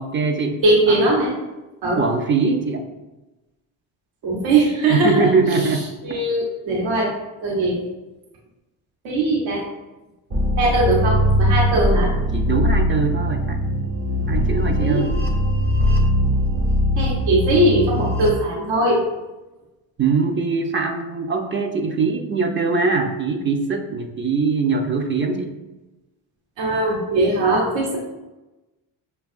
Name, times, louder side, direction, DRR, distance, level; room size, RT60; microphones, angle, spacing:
voice 1, 0.0-0.6 0.9-1.0 2.0-2.8 4.9-5.8 12.3-13.6 14.3-15.2 20.0-25.5, right 4 dB, 25° right, 4 dB, 0.5 m, -22 dB
voice 2, 0.6-1.3 1.8-2.1 4.2-5.3 5.6-5.7 6.0-7.1 7.4-7.8 9.0-9.6 10.6-12.1 14.8-15.0 17.0-19.0 26.6-28.0, right 2 dB, 70° right, -2 dB, 1.0 m, -20 dB
sound 1, 10.3-18.3, equal, 45° right, 1.1 m, -20 dB
5.4 x 2.2 x 2.4 m, 1.1 s
supercardioid pair, 70°, 46 cm